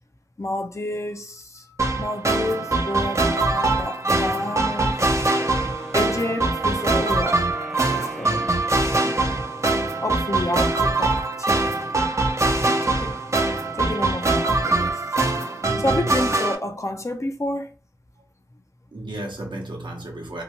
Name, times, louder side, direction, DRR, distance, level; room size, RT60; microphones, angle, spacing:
voice 1, 0.4-5.1 5.9-7.4 7.9-8.4 8.9-9.1 10.0-11.1 11.4-11.8 12.6-13.2 13.5-15.0 15.8-17.7, left 1 dB, 40° left, 0.5 m, -29 dB
sound 1, 1.8-16.5, right 2 dB, 40° right, 0.5 m, -23 dB
Wind instrument woodwind instrument, 5.3-10.2, equal, 5° right, 0.7 m, -40 dB
voice 2, 8.2-8.7 15.6-16.1 18.9-20.4, right 2 dB, 75° right, 0.8 m, -33 dB
2.8 x 2.2 x 2.8 m
wide cardioid pair, 50°, 8 cm